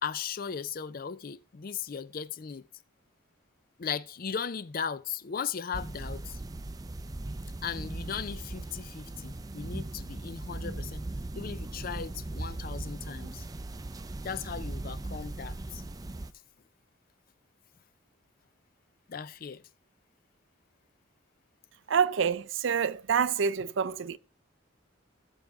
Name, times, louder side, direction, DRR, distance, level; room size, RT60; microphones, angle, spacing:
voice 1, 0.0-2.7 3.8-6.4 7.6-11.0 11.4-13.4 14.2-15.8 19.1-19.6, left 7 dB, 45° left, 0.4 m, -37 dB
sound 1, 5.7-16.3, right 2 dB, 20° right, 0.4 m, -39 dB
voice 2, 21.9-24.2, right 6 dB, 70° right, 0.5 m, -27 dB
19.0 x 6.4 x 3.5 m
head